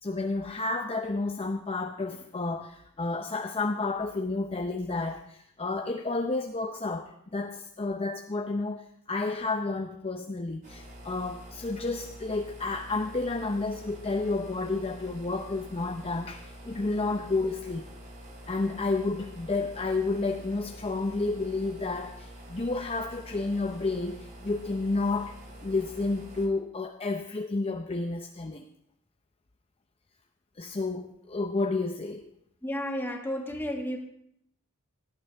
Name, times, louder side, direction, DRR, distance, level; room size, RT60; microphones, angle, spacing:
voice 1, 0.0-17.9 18.5-28.7 30.6-32.3, left 3 dB, 25° left, 5 dB, 0.6 m, -31 dB
sound 1, 10.6-26.5, equal, 35° right, 3.0 m, -46 dB
voice 2, 32.6-34.0, equal, 10° left, 1 dB, 1.8 m, -32 dB
17.5 x 11.5 x 3.4 m, 0.71 s
head